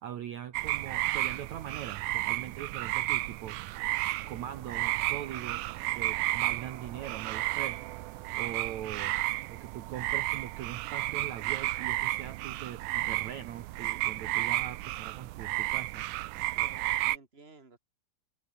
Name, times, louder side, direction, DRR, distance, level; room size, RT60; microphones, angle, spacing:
voice 1, 0.0-3.8 4.3-7.8 8.3-9.2 9.5-16.7, right 10 dB, 60° right, 2.4 m, -42 dB
sound 1, 0.5-17.2, right 18 dB, 80° right, 1.9 m, -32 dB
voice 2, 16.3-17.8, right 4 dB, 15° right, 3.4 m, -55 dB
omnidirectional pair, 4.2 m